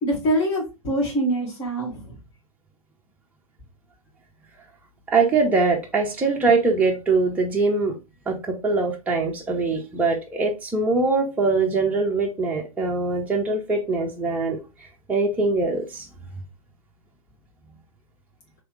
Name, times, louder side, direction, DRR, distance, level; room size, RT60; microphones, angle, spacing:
voice 1, 0.0-2.2, right 1 dB, 35° left, -3 dB, 2.2 m, -24 dB
voice 2, 5.1-8.0 8.3-14.6 15.1-16.1, right 3 dB, 10° right, 0 dB, 0.7 m, -22 dB
3.6 x 3.2 x 3.1 m, 0.26 s
figure-of-eight pair, 105°, 18 cm